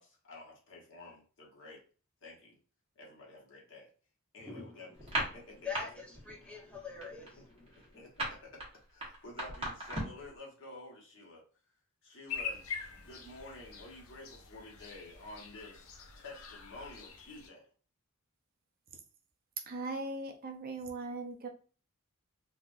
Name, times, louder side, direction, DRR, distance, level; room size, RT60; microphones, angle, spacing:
voice 1, 0.0-1.8 2.2-2.6 2.9-3.9 4.3-4.9 5.2-5.6 7.9-8.6 8.9-11.4 12.0-15.9 16.2-17.7, left 2 dB, 60° left, -1 dB, 1.1 m, -50 dB
voice 2, 4.4-8.1, left 5 dB, 5° left, -3 dB, 0.8 m, -45 dB
sound 1, 5.0-5.8 6.1-6.4 6.7-10.3, right 1 dB, 25° right, 1.3 m, -36 dB
sound 2, 12.3-17.5, left 6 dB, 75° left, 0.5 m, -44 dB
voice 3, 19.7-21.5, right 2 dB, 45° right, 3 dB, 0.5 m, -39 dB
3.5 x 2.5 x 2.5 m, 0.38 s
head